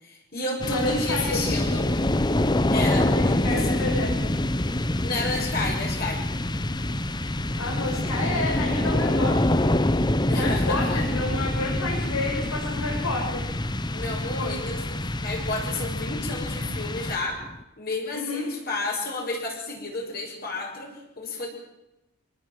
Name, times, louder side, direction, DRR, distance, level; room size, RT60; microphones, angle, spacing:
voice 1, 0.0-1.9 2.7-3.8 5.0-6.2 10.3-11.1 13.9-17.4 17.8-21.5, left 2 dB, 45° left, 0 dB, 6.5 m, -31 dB
sound 1, 0.6-17.6, left 1 dB, 20° left, 0.9 m, -26 dB
voice 2, 0.7-1.6 3.1-4.1 7.6-13.5 14.3-14.6 18.1-18.5, left 2 dB, 90° left, -2 dB, 6.9 m, -30 dB
26.0 x 19.0 x 7.7 m, 0.93 s
head